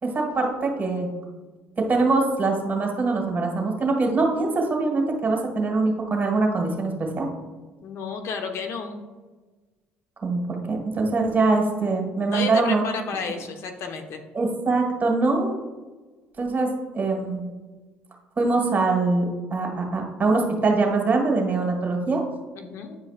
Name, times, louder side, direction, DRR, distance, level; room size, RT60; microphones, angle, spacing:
voice 1, 0.0-1.1 1.8-7.3 10.2-12.8 13.3-13.4 14.3-15.5 16.4-17.5 18.4-22.2, right 3 dB, 35° right, 1 dB, 1.8 m, -23 dB
voice 2, 7.8-9.0 12.2-14.2 22.6-23.0, left 5 dB, 60° left, 5 dB, 0.8 m, -32 dB
9.2 x 4.9 x 2.4 m, 1.3 s
hypercardioid pair, 65°, 5 cm